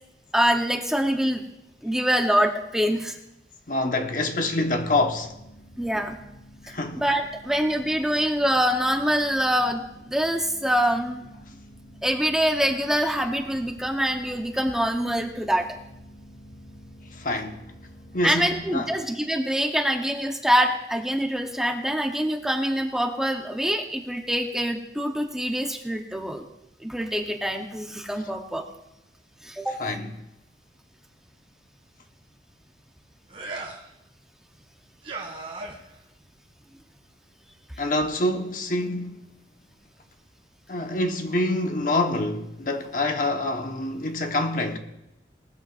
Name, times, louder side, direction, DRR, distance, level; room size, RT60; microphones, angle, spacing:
voice 1, 0.3-1.4 1.8-3.2 5.8-6.2 6.7-11.3 12.0-15.7 18.2-26.4 26.8-28.6 29.4-29.8, equal, 5° right, 0.8 m, -25 dB
voice 2, 3.7-5.4 6.6-7.0 17.1-17.6 18.1-18.9 29.8-30.1 37.8-39.3 40.7-44.8, left 2 dB, 50° left, 1.1 m, -26 dB
sound 1, 4.6-18.7, equal, 35° left, 2.7 m, -48 dB
sound 2, 33.3-33.9 35.0-36.0, right 3 dB, 35° right, 2.1 m, -36 dB
19.0 x 13.5 x 2.5 m
head